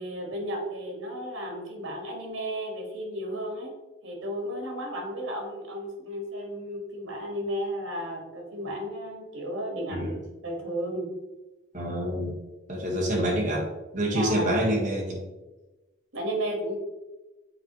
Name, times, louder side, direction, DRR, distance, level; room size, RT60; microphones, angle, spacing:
voice 1, 0.0-3.7 4.0-10.2 10.4-11.1 14.1-14.6 16.1-16.8, equal, 85° right, 1 dB, 1.6 m, -33 dB
voice 2, 11.7-12.4 12.7-13.6 13.9-15.2, equal, 40° right, -3 dB, 1.5 m, -27 dB
7.3 x 4.2 x 3.1 m, 1.1 s
head